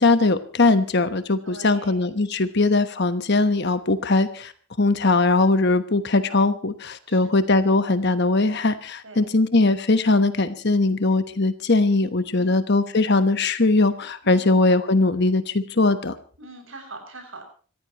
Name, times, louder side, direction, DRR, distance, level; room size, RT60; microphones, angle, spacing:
voice 1, 0.0-4.5 4.8-16.2, left 2 dB, 50° left, 10 dB, 1.1 m, -20 dB
voice 2, 1.4-2.1 7.1-7.5 9.0-9.3 12.3-12.6 14.2-14.5 16.4-17.4, right 2 dB, 60° right, 6 dB, 6.6 m, -42 dB
27.0 x 14.5 x 3.0 m, 0.40 s
head